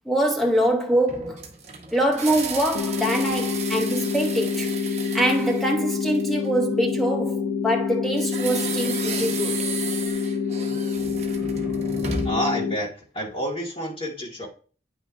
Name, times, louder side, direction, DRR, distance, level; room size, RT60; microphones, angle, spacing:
voice 1, 0.1-1.5 1.9-4.7 5.1-9.7 11.4-12.2, right 1 dB, ahead, 0.7 m, -24 dB
sound 1, 1.1-6.5 8.2-12.5, right 4 dB, 35° right, 0.9 m, -34 dB
sound 2, 2.7-12.8, left 5 dB, 85° left, 0.7 m, -27 dB
voice 2, 12.2-14.5, equal, 30° left, 1.9 m, -29 dB
9.0 x 5.8 x 2.6 m
head